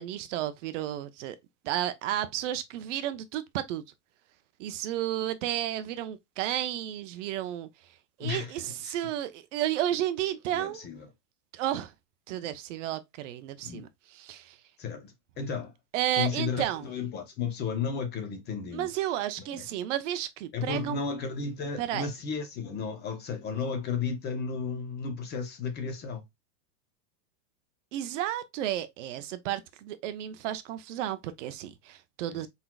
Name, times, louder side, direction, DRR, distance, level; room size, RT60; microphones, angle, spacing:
voice 1, 0.0-1.4 1.6-3.8 4.6-7.7 8.2-10.8 11.5-11.9 12.3-14.6 15.9-16.9 18.7-21.0 21.8-22.1 27.9-32.5, right 12 dB, 50° right, 0.6 m, -32 dB
voice 2, 8.2-8.5 8.8-9.0 10.5-11.1 13.6-13.9 14.8-15.7 16.1-18.9 19.5-19.6 20.5-26.2 32.3-32.5, left 5 dB, 20° left, 0.8 m, -33 dB
4.5 x 4.0 x 2.2 m
supercardioid pair, 160°, 47 cm